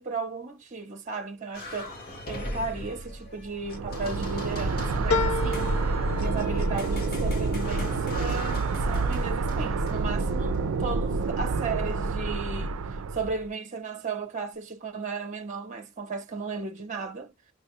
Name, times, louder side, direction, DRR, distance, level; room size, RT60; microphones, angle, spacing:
voice 1, 0.0-2.0 2.3-5.8 6.2-17.3, right 4 dB, 35° right, 0.8 m, -35 dB
sound 1, 1.5-12.1, left 1 dB, 45° left, 1.4 m, -40 dB
sound 2, 3.6-13.5, right 3 dB, 80° right, 0.4 m, -28 dB
sound 3, 5.1-9.9 10.3-11.0 11.4-11.5, left 4 dB, 85° left, 0.6 m, -34 dB
6.0 x 2.3 x 2.9 m
head